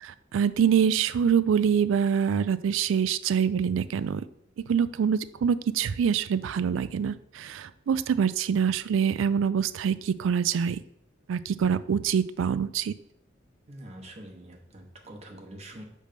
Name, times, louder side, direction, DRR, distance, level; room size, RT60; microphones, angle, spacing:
voice 1, 0.0-4.2 4.7-10.8 11.3-12.9, right 7 dB, 70° right, 15 dB, 0.3 m, -25 dB
voice 2, 13.7-15.8, right 1 dB, 35° right, 1 dB, 0.9 m, -45 dB
6.5 x 3.2 x 5.0 m, 0.75 s
head